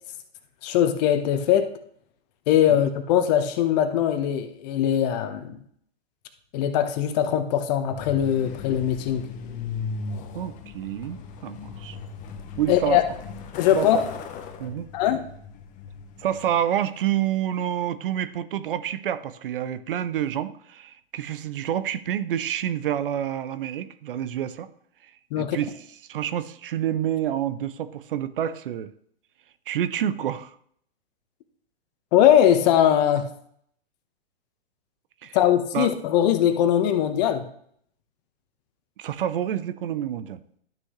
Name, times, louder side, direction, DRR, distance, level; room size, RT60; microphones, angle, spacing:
voice 1, 0.6-1.7 2.5-5.6 6.5-9.3 12.7-13.0 13.6-14.0 14.9-15.2 25.3-25.6 32.1-33.3 35.3-37.4, left 10 dB, 40° left, 8 dB, 1.2 m, -21 dB
Truck, 7.9-16.6, left 5 dB, 25° left, 0.9 m, -38 dB
voice 2, 10.3-12.0 12.6-13.0 13.7-14.1 14.6-14.9 16.2-24.7 25.4-25.7 26.1-28.9 29.7-30.5 35.2-35.4 35.7-35.9 39.0-40.4, right 10 dB, 60° right, 14 dB, 0.7 m, -28 dB
12.0 x 6.3 x 3.2 m, 0.65 s
hypercardioid pair, 120°, 31 cm